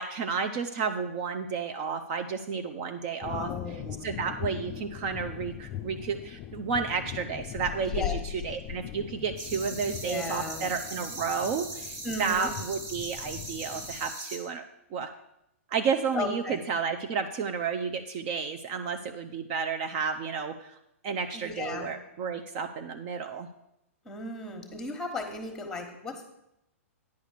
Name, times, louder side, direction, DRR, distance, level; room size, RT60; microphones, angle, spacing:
voice 1, 0.0-3.5 4.0-14.6 14.9-15.1 15.7-20.8 21.0-23.5, right 5 dB, 40° right, 8 dB, 0.5 m, -32 dB
sound 1, 3.2-14.1, left 12 dB, 30° left, 0.4 m, -40 dB
voice 2, 3.2-4.1 7.8-8.2 9.9-10.7 12.0-12.5 16.1-16.6 21.3-21.9 24.0-26.3, left 3 dB, 5° left, 5 dB, 1.3 m, -36 dB
sound 2, 9.4-14.4, right 2 dB, 75° right, 2.4 m, -40 dB
9.4 x 4.9 x 6.5 m, 0.82 s
hypercardioid pair, 135°, 8 cm